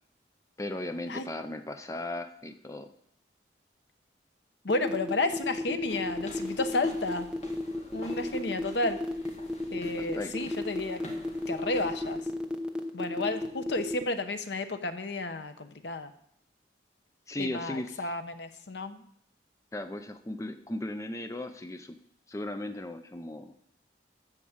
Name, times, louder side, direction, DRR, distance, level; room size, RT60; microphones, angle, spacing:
voice 1, 0.6-2.9 10.0-10.3 17.3-17.9 19.7-22.0 22.3-23.5, left 1 dB, 15° left, 8 dB, 0.5 m, -36 dB
voice 2, 4.6-7.3 7.9-9.0 9.7-11.0 11.5-12.3 12.9-16.1 17.4-19.0, left 2 dB, 75° left, 9 dB, 0.9 m, -32 dB
sound 1, 4.7-14.0, left 2 dB, 5° right, 0.9 m, -33 dB
sound 2, 5.9-12.2, equal, 35° left, 2.0 m, -49 dB
13.5 x 4.9 x 7.2 m, 0.69 s
head